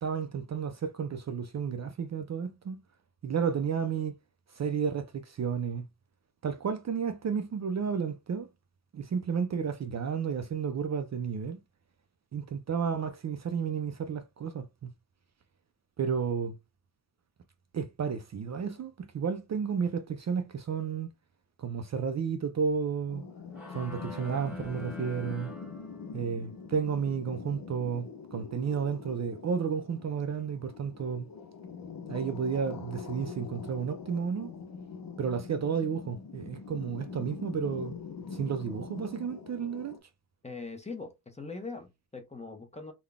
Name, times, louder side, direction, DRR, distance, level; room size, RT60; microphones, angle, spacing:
voice 1, 0.0-2.8 3.2-4.2 4.5-5.9 6.4-8.5 8.9-11.6 12.3-14.9 16.0-16.6 17.7-21.1 21.6-23.2 23.7-25.5 26.1-31.3 32.1-34.5 35.2-37.9 38.3-40.0, right 6 dB, 45° right, 0.4 m, -32 dB
sound 1, 23.1-40.0, left 5 dB, 60° left, 0.8 m, -43 dB
sound 2, 23.5-26.4, equal, 5° right, 1.3 m, -46 dB
voice 2, 40.4-42.9, left 3 dB, 15° left, 0.8 m, -41 dB
3.7 x 2.2 x 3.5 m
wide cardioid pair, 120°, 38 cm